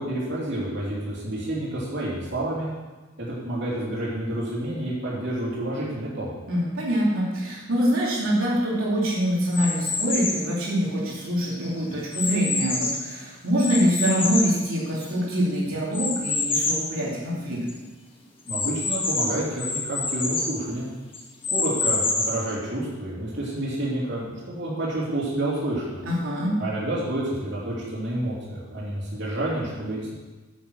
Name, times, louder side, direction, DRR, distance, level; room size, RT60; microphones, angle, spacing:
voice 1, 0.0-2.7 3.2-6.3 18.5-20.9 21.5-26.0 26.6-30.1, right 1 dB, 55° right, -8 dB, 3.1 m, -29 dB
voice 2, 6.5-17.6 26.0-26.5, equal, 75° right, -6 dB, 2.9 m, -24 dB
sound 1, 9.5-10.5 11.1-13.1 13.6-15.3 15.9-16.9 17.4-17.5 17.7-17.8 18.5-20.6 21.1-22.5, left 3 dB, 25° left, 1.5 m, -27 dB
9.1 x 7.4 x 6.5 m, 1.2 s
head